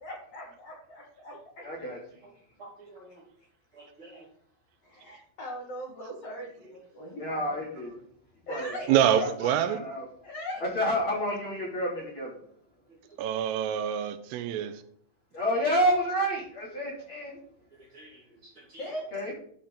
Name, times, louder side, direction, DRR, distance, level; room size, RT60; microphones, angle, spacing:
voice 1, 0.0-1.6 4.8-7.6 8.5-8.9 10.2-10.6 18.8-19.0, equal, 70° left, 1.5 m, -40 dB
voice 2, 1.6-2.0 7.2-7.9 8.5-10.1 10.6-12.4 15.3-17.4 19.1-19.3, equal, 30° left, 3.0 m, -29 dB
voice 3, 2.6-3.3 3.7-4.3 7.0-7.1 13.0-13.2 14.6-14.7 17.7-18.9, right 2 dB, 35° right, 2.2 m, -51 dB
voice 4, 8.9-9.8 13.2-14.7, right 10 dB, 90° right, 3.4 m, -25 dB
12.5 x 6.5 x 3.9 m
omnidirectional pair, 5.6 m